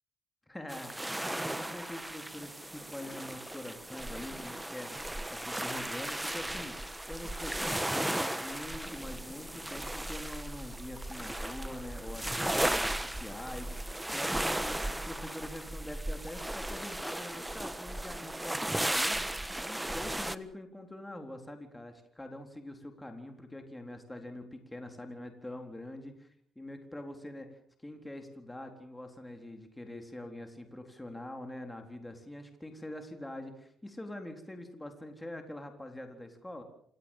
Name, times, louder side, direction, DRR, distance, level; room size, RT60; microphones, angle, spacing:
voice 1, 0.5-6.7 7.1-19.2 19.6-26.1 26.6-36.6, left 1 dB, 10° left, 5 dB, 3.9 m, -44 dB
sound 1, 0.7-20.4, right 1 dB, 10° right, 1.5 m, -36 dB
28.5 x 16.5 x 7.4 m, 0.65 s
cardioid pair, 90°, 0 cm